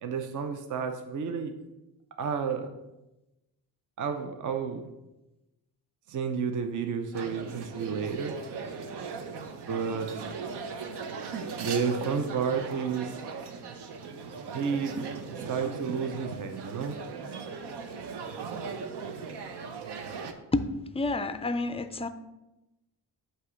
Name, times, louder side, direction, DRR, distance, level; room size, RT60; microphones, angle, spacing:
voice 1, 0.0-1.5 2.2-2.7 4.0-4.8 6.1-8.4 9.7-10.1 11.6-13.2 14.5-15.0 15.3-17.0, right 6 dB, 50° right, 6 dB, 0.7 m, -31 dB
sound 1, 7.1-20.3, right 5 dB, 85° right, 0.8 m, -38 dB
voice 2, 20.9-22.1, left 2 dB, 15° left, 10 dB, 0.3 m, -29 dB
8.1 x 2.9 x 6.1 m, 0.98 s
cardioid pair, 135°, 39 cm